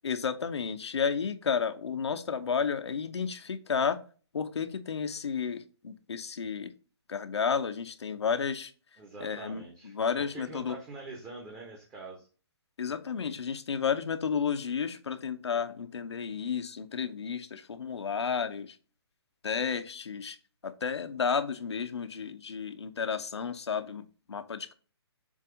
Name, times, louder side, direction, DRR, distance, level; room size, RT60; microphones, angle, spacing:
voice 1, 0.0-4.0 4.3-6.7 7.1-8.7 9.2-10.8 12.8-18.8 19.4-20.4 20.6-24.7, left 6 dB, 80° left, 9 dB, 0.9 m, -32 dB
voice 2, 9.0-12.3, right 3 dB, 15° right, 0 dB, 1.0 m, -45 dB
7.4 x 2.7 x 5.0 m, 0.37 s
hypercardioid pair, 155°, 14 cm